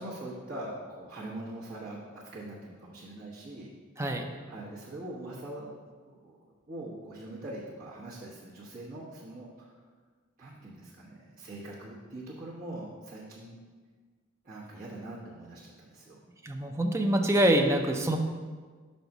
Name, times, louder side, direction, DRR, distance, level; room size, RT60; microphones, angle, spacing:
voice 1, 0.0-3.7 4.5-6.4 6.7-9.8 10.4-13.6 14.4-16.2, right 1 dB, 45° right, -8 dB, 1.1 m, -42 dB
voice 2, 4.0-4.3 16.4-18.2, right 1 dB, 15° right, 3 dB, 0.5 m, -25 dB
5.4 x 4.1 x 5.9 m, 1.5 s
head